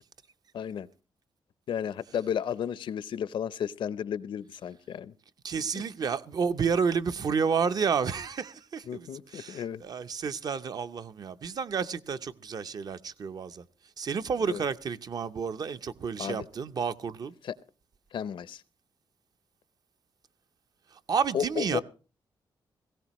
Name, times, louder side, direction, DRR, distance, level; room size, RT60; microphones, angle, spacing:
voice 1, 0.5-0.9 1.7-5.1 8.9-9.8 14.5-14.6 16.2-16.5 17.4-17.5 18.1-18.6 21.3-21.8, left 8 dB, 70° left, 0.6 m, -33 dB
voice 2, 5.4-9.1 9.3-13.6 14.0-17.3 21.1-21.8, right 6 dB, 50° right, 0.6 m, -30 dB
18.0 x 16.5 x 3.0 m
wide cardioid pair, 150°, 9 cm